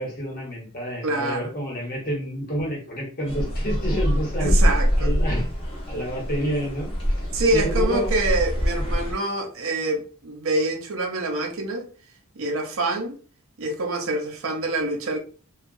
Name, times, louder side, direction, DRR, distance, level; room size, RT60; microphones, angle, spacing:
voice 1, 0.0-4.6 5.0-5.5 5.9-6.9 7.5-8.1 8.8-8.9, equal, 40° left, 1.0 m, -29 dB
voice 2, 1.0-1.5 4.4-5.1 7.3-11.9 12.4-13.1 13.6-15.2, right 2 dB, 60° right, 0.6 m, -26 dB
sound 1, 3.3-9.1, equal, 25° left, 0.7 m, -24 dB
2.8 x 2.3 x 2.6 m
head